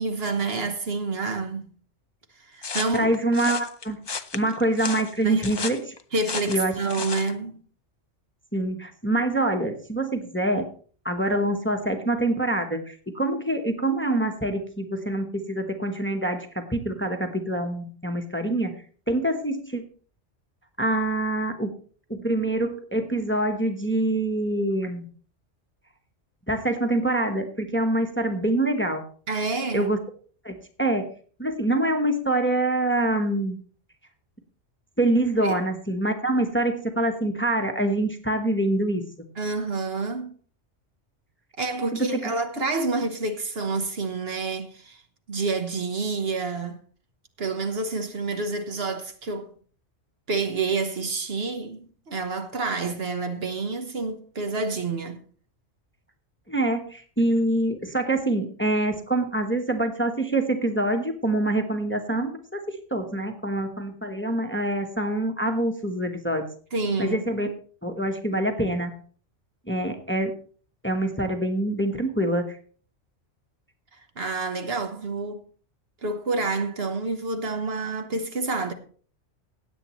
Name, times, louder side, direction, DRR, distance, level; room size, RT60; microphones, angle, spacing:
voice 1, 0.0-1.7 2.4-3.1 5.2-5.6 6.1-7.6 29.3-29.9 35.4-35.6 39.4-40.3 41.6-45.0 45.3-46.8 47.4-49.5 50.3-55.2 66.7-67.2 74.2-75.4 76.0-78.7, right 3 dB, 55° right, 1.2 m, -28 dB
sound 1, 2.6-7.3, left 5 dB, 40° left, 0.4 m, -34 dB
voice 2, 2.9-5.9 6.5-6.7 8.5-10.7 11.0-18.7 19.1-19.8 20.8-21.7 22.1-25.1 26.5-29.0 29.7-30.0 30.4-31.1 31.4-33.6 35.0-39.0 41.9-42.3 56.5-62.6 62.9-66.5 67.0-67.5 67.8-68.9 69.7-70.3 70.8-72.6, right 1 dB, 10° left, 1.0 m, -25 dB
17.0 x 8.3 x 3.1 m
omnidirectional pair, 1.2 m